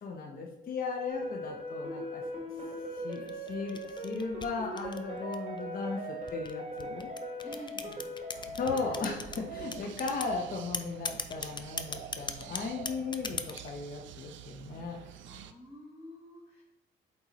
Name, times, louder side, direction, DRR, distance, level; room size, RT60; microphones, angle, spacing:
voice 1, 0.0-2.2 2.9-7.1 8.6-15.0, left 4 dB, 45° left, 0 dB, 0.8 m, -36 dB
sound 1, 1.1-9.1, equal, 35° right, 2.2 m, -40 dB
sound 2, 3.1-5.6 6.3-9.4 9.7-10.3 10.7-13.7, left 4 dB, 25° left, 0.5 m, -38 dB
voice 2, 7.4-8.1 15.2-16.6, equal, 10° right, -8 dB, 1.9 m, -48 dB
sound 3, 8.3-15.5, right 11 dB, 70° right, 0.5 m, -47 dB
8.2 x 4.1 x 3.0 m, 1.0 s
cardioid pair, 90°, 20 cm